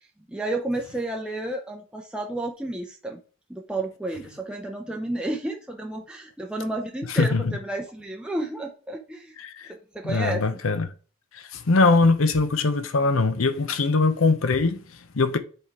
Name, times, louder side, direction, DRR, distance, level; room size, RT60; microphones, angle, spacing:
voice 1, 0.3-3.2 3.5-9.4 9.7-10.4, right 2 dB, 5° right, 0.6 m, -31 dB
voice 2, 7.1-7.6 9.4-9.7 10.0-10.9 11.3-15.4, left 3 dB, 80° left, 0.8 m, -22 dB
7.9 x 3.6 x 4.7 m
head